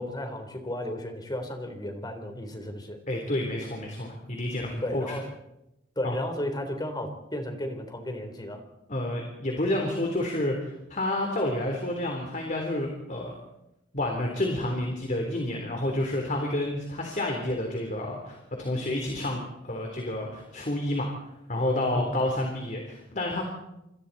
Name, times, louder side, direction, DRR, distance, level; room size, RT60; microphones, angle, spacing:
voice 1, 0.0-3.0 4.8-5.2 6.0-8.7 21.9-22.2, left 1 dB, 25° left, 5 dB, 3.8 m, -34 dB
voice 2, 3.1-5.0 6.0-6.2 8.9-13.3 13.9-21.1 21.5-23.4, left 1 dB, 45° left, 2 dB, 3.6 m, -29 dB
27.0 x 26.5 x 4.2 m, 0.88 s
head